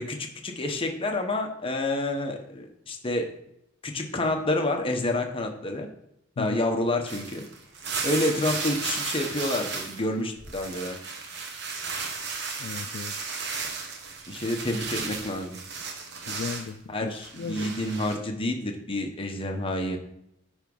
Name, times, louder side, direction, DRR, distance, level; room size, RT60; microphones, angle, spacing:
voice 1, 0.0-3.3 3.8-5.9 6.4-7.5 8.0-11.0 14.3-15.6 16.9-20.0, left 1 dB, 30° left, 3 dB, 1.2 m, -28 dB
sound 1, 7.1-10.1 10.3-16.7 17.1-18.2, right 4 dB, 60° right, 1.4 m, -34 dB
voice 2, 12.6-13.1 16.3-17.1 17.3-17.8, left 5 dB, 55° left, 8 dB, 0.3 m, -35 dB
10.0 x 3.7 x 5.4 m, 0.78 s
head